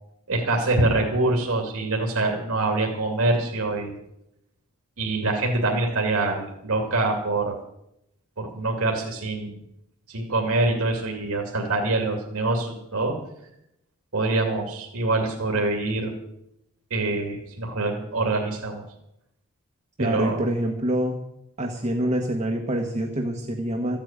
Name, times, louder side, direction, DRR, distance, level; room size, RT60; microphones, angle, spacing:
voice 1, 0.3-3.9 5.0-7.5 8.4-9.6 10.1-13.1 14.1-16.1 16.9-18.8 20.0-20.4, right 2 dB, 75° right, 1 dB, 2.5 m, -25 dB
voice 2, 20.0-21.2 21.6-24.0, right 1 dB, 30° right, 1 dB, 1.3 m, -26 dB
14.5 x 8.7 x 8.7 m, 0.82 s
head